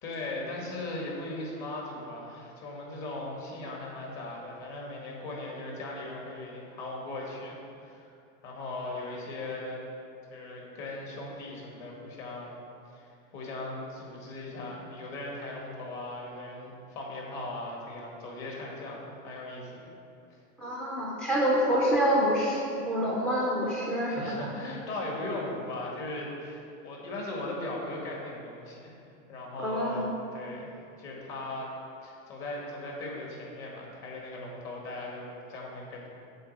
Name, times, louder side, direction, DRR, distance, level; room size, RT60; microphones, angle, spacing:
voice 1, 0.0-8.1 8.4-9.8 10.3-12.6 12.9-19.9 24.0-29.0 29.3-30.7 31.0-31.7 32.0-36.1, left 2 dB, 45° left, -2 dB, 2.0 m, -38 dB
voice 2, 20.6-24.5 29.6-30.1, equal, ahead, -4 dB, 0.4 m, -27 dB
7.8 x 4.2 x 6.6 m, 2.7 s
supercardioid pair, 140°, 39 cm